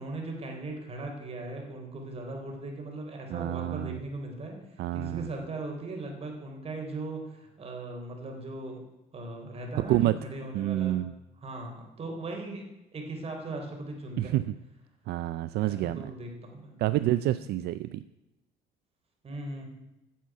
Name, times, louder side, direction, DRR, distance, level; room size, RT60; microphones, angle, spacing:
voice 1, 0.0-4.6 4.9-8.8 9.1-11.0 11.4-12.7 12.9-14.4 15.6-17.4 19.2-19.7, right 2 dB, 35° right, 2 dB, 3.6 m, -38 dB
voice 2, 3.3-4.0 4.8-5.3 9.7-10.2 10.5-11.1 14.2-14.5 15.1-16.1 16.8-18.0, right 15 dB, 70° right, 14 dB, 0.4 m, -28 dB
10.0 x 7.5 x 9.4 m, 0.95 s
cardioid pair, 110°, 17 cm